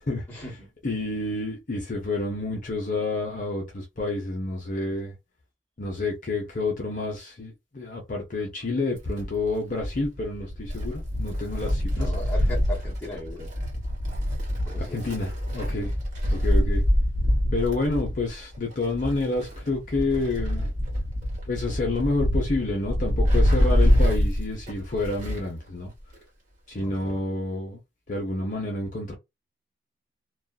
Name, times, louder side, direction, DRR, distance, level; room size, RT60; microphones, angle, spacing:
voice 1, 0.1-0.5 0.8-5.1 5.8-12.1 14.8-15.9 16.3-16.8 17.5-20.7 21.4-25.9 26.7-27.8 28.1-29.1, left 2 dB, 40° left, 0.7 m, -29 dB
Wind, 9.0-25.6 25.9-26.0 27.0-27.1, equal, 40° right, 1.3 m, -25 dB
voice 2, 11.9-13.5 14.6-15.0 26.7-27.2, left 1 dB, 10° left, 1.2 m, -37 dB
2.5 x 2.3 x 2.3 m
head